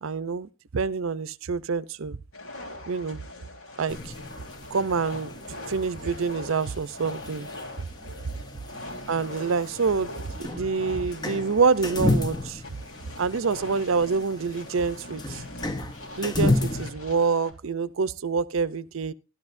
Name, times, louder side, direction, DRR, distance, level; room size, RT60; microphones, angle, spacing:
voice 1, 0.0-2.2 2.9-3.2 3.8-4.1 4.7-5.3 5.7-7.5 9.1-10.1 10.4-12.6 13.2-15.4 16.2-19.1, right 5 dB, 70° right, 0.6 m, -26 dB
sound 1, 2.3-17.5, left 1 dB, 80° left, 3.0 m, -42 dB
sound 2, 3.9-16.9, left 2 dB, 20° left, 0.7 m, -33 dB
14.0 x 12.0 x 2.6 m
head